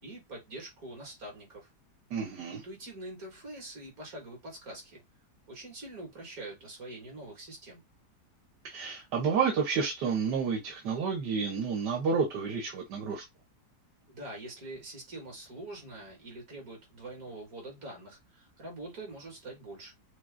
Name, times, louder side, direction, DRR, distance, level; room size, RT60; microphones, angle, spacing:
voice 1, 0.0-1.7 2.5-5.0 5.5-7.8 14.1-19.9, right 2 dB, 60° right, 2.6 m, -44 dB
voice 2, 2.1-2.6 8.6-13.2, right 5 dB, 85° right, 1.6 m, -30 dB
6.0 x 2.0 x 3.8 m
omnidirectional pair, 1.8 m